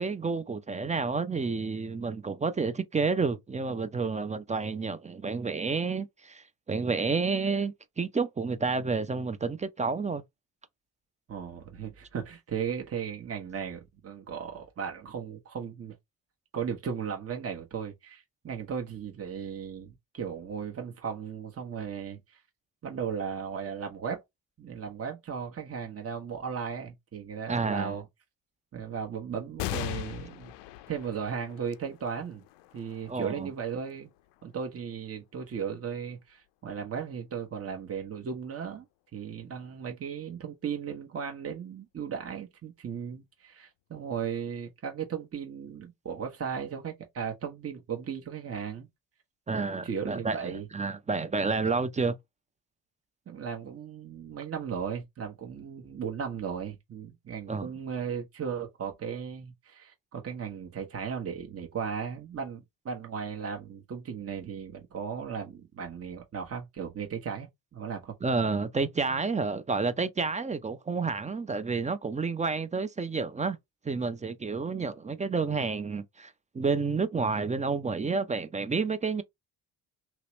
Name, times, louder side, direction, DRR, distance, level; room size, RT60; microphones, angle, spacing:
voice 1, 0.0-10.2 27.5-28.0 33.1-33.5 49.5-52.1 57.5-57.7 68.2-73.6 73.8-79.2, right 4 dB, 15° right, 0.4 m, -30 dB
voice 2, 11.3-16.0 16.5-22.4 22.8-24.2 24.6-28.0 28.7-30.5 30.9-32.4 32.7-34.1 34.4-38.8 39.1-48.9 49.5-50.7 53.3-68.1, right 7 dB, 35° right, 1.0 m, -36 dB
sound 1, 29.6-36.5 37.1-37.2 38.3-38.9, left 15 dB, 75° left, 0.5 m, -41 dB
2.9 x 2.9 x 3.1 m
supercardioid pair, 65°, 43 cm